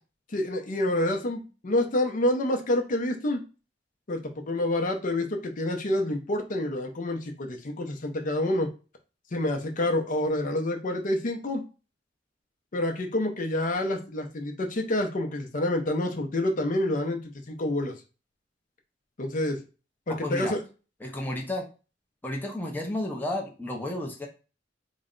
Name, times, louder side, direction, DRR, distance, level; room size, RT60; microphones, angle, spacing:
voice 1, 0.3-3.4 4.1-8.7 9.3-11.6 12.7-17.2 17.5-17.9 19.2-19.6 20.1-20.6, left 1 dB, 45° left, 3 dB, 0.6 m, -28 dB
voice 2, 20.1-20.5 21.0-21.7 22.2-24.3, left 1 dB, 10° left, 0 dB, 0.6 m, -32 dB
4.0 x 2.1 x 3.7 m, 0.33 s
head